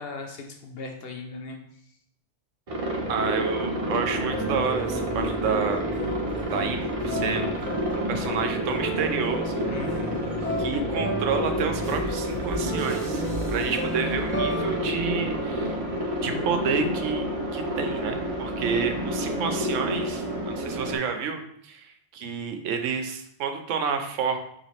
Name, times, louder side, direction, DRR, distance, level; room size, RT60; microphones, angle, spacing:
voice 1, 0.0-1.6 9.6-10.6, left 3 dB, 65° left, 2 dB, 0.7 m, -38 dB
Aircraft, 2.7-21.0, equal, 55° right, 0.4 m, -29 dB
voice 2, 3.1-5.8 6.5-7.7 8.1-9.6 10.6-13.2 13.5-15.7 16.2-17.2 17.5-24.4, right 6 dB, 85° right, 5 dB, 0.9 m, -29 dB
sound 1, 4.3-16.5, right 1 dB, 15° left, 0.4 m, -33 dB
sound 2, 11.8-14.2, equal, 30° right, 0.8 m, -39 dB
3.0 x 2.9 x 4.1 m, 0.71 s
omnidirectional pair, 1.2 m